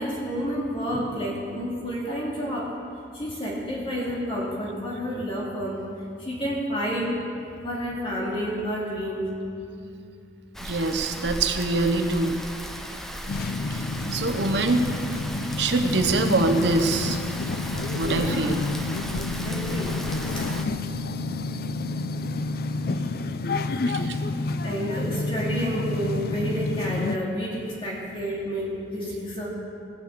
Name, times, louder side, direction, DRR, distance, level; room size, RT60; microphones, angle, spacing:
voice 1, 0.0-2.7 3.1-5.8 6.2-7.1 7.6-9.4 18.2-18.5 19.4-19.9 20.3-20.6 22.9-23.0 24.6-29.5, equal, 30° left, -5 dB, 2.3 m, -30 dB
Rain, 10.5-20.6, equal, ahead, 0.6 m, -36 dB
voice 2, 10.6-12.4 13.7-13.8 14.1-14.8 15.6-17.2 17.9-18.6 23.9-24.2, right 2 dB, 65° right, 6 dB, 0.9 m, -24 dB
sound 1, 13.3-27.2, left 3 dB, 55° left, 0.4 m, -29 dB
17.0 x 6.7 x 7.8 m, 2.5 s
head